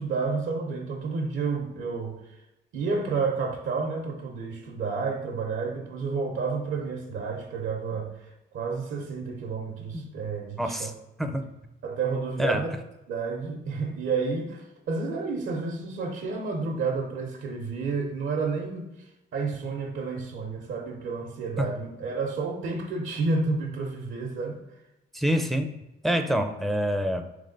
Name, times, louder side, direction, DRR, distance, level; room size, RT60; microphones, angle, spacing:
voice 1, 0.0-2.4 2.7-10.9 11.8-12.7 13.1-18.9 19.3-24.6, right 4 dB, 80° right, 1 dB, 0.8 m, -30 dB
voice 2, 10.6-10.9 11.2-11.4 12.4-12.6 21.6-21.7 25.1-25.7 26.0-27.2, equal, ahead, 5 dB, 0.4 m, -26 dB
3.5 x 3.3 x 3.9 m, 0.95 s
cardioid pair, 90°, 20 cm